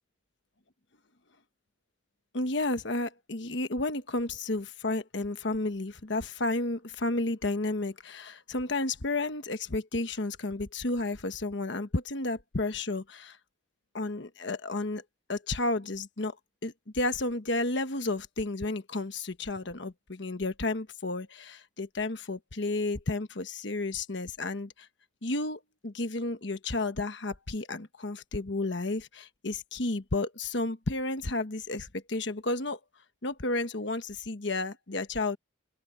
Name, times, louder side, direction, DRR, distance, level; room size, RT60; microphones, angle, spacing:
voice 1, 2.3-13.4 13.9-15.0 15.3-16.4 16.6-24.9 25.2-32.8 33.2-35.4, left 2 dB, 65° left, 1.2 m, -32 dB
open air
head